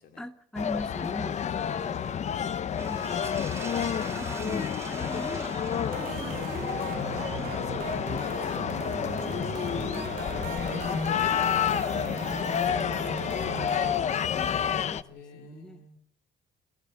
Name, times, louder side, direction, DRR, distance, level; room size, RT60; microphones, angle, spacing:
voice 1, 0.2-2.1 2.8-3.3 4.1-5.6 5.9-7.6 9.0-9.5 9.9-11.6 12.3-13.0 14.3-15.8, left 1 dB, 5° left, 11 dB, 1.0 m, -42 dB
sound 1, 0.6-15.0, left 8 dB, 45° left, 0.8 m, -29 dB
voice 2, 1.5-2.5 3.1-4.3 7.6-8.8 11.6-12.3 15.0-16.0, left 5 dB, 70° left, 5 dB, 3.5 m, -49 dB
sound 2, 2.8-8.8, right 3 dB, 15° right, 3.2 m, -42 dB
sound 3, 5.9-13.9, right 11 dB, 60° right, 1.3 m, -39 dB
27.0 x 15.0 x 6.6 m, 0.76 s
cardioid pair, 110°, 17 cm